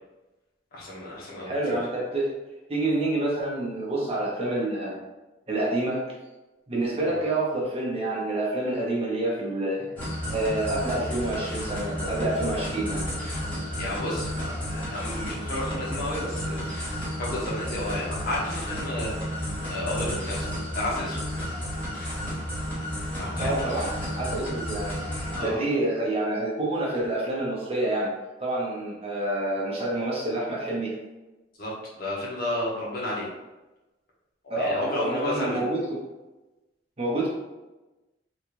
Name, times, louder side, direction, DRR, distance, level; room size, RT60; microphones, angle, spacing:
voice 1, 0.7-1.8 7.0-7.2 13.8-16.8 17.2-20.5 20.7-21.3 23.2-23.6 25.3-25.6 31.6-33.3 34.4-35.7, left 1 dB, 55° left, -5 dB, 1.1 m, -32 dB
voice 2, 1.4-2.3 2.7-5.0 5.5-6.0 6.7-9.9 10.3-13.0 23.4-23.9 24.2-28.1 28.4-30.9 34.5-36.0 37.0-37.3, right 2 dB, 30° right, -4 dB, 0.9 m, -28 dB
sound 1, 10.0-25.5, equal, 10° left, 1.1 m, -32 dB
3.6 x 2.4 x 3.0 m, 1.1 s
head